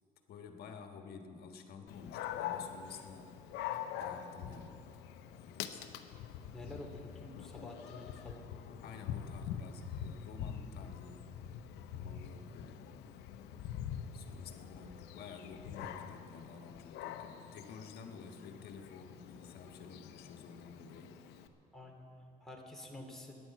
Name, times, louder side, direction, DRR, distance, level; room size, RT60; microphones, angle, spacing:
voice 1, 0.3-3.3 4.0-4.8 5.4-6.0 8.8-11.3 12.0-12.9 14.1-21.1, left 5 dB, 65° left, 5 dB, 1.5 m, -51 dB
Dog, 1.9-21.5, left 9 dB, 90° left, 0.8 m, -45 dB
voice 2, 6.5-8.4 21.7-23.4, left 1 dB, ahead, -1 dB, 2.5 m, -49 dB
14.5 x 10.5 x 7.5 m, 2.5 s
cardioid pair, 110°, 17 cm